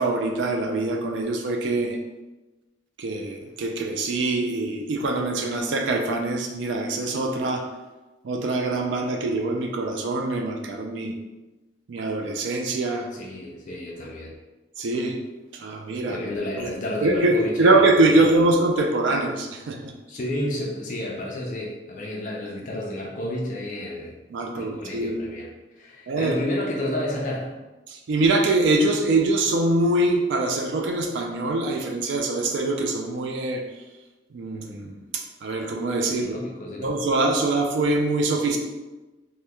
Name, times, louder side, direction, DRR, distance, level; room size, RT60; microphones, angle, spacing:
voice 1, 0.0-2.0 3.0-7.7 8.2-11.1 11.9-13.1 14.8-15.2 15.5-16.2 16.6-16.7 17.0-19.9 24.3-25.2 26.1-26.4 27.9-33.6 34.3-36.3 36.8-38.6, right 2 dB, 85° right, 3 dB, 0.4 m, -23 dB
voice 2, 13.1-14.3 16.0-18.4 20.1-24.1 24.5-25.5 25.8-27.5 36.2-37.0, left 1 dB, 45° left, -2 dB, 0.4 m, -31 dB
2.8 x 2.1 x 3.4 m, 1.1 s
head